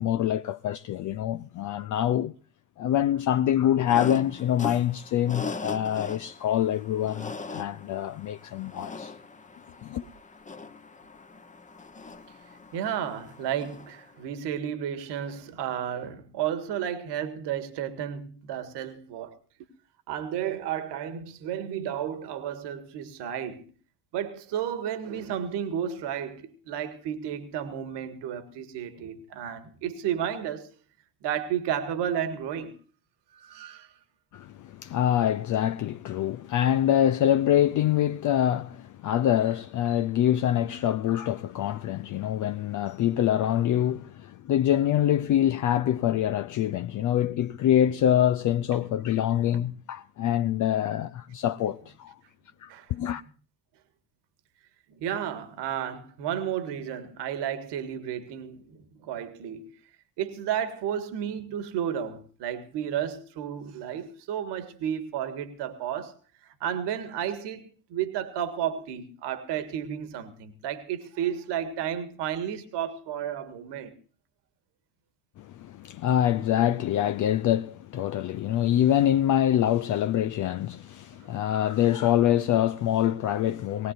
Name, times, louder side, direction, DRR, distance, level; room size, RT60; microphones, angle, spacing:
voice 1, 0.0-2.3 2.8-9.1 9.8-10.0 34.3-52.1 52.6-53.2 75.4-83.9, left 11 dB, 40° left, 0.6 m, -25 dB
sound 1, 3.9-14.2, left 4 dB, 15° left, 1.0 m, -40 dB
voice 2, 12.7-19.4 20.1-23.6 24.1-30.7 31.2-32.7 33.3-33.9 52.7-52.9 54.9-59.7 60.2-66.1 66.6-73.9, right 9 dB, 55° right, 1.8 m, -32 dB
19.0 x 19.0 x 2.6 m
hypercardioid pair, 60°, 48 cm